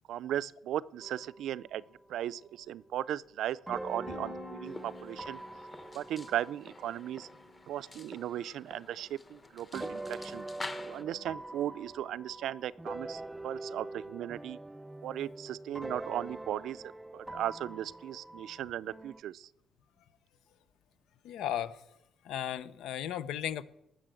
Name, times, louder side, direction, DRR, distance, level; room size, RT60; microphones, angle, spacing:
voice 1, 0.1-1.8 2.1-5.4 5.9-7.3 7.7-10.4 10.9-14.6 15.0-16.8 17.1-19.5, right 11 dB, 70° right, 0.5 m, -37 dB
sound 1, 1.0-2.0 2.3-8.6 9.7-19.2, right 2 dB, 10° right, 0.4 m, -45 dB
Piano, 4.1-9.8, left 4 dB, 40° left, 4.4 m, -53 dB
sound 2, 4.6-11.0, left 3 dB, 20° left, 1.0 m, -48 dB
voice 2, 21.2-21.8 22.2-23.6, left 10 dB, 80° left, 0.8 m, -35 dB
19.0 x 6.7 x 7.6 m
cardioid pair, 145°, 0 cm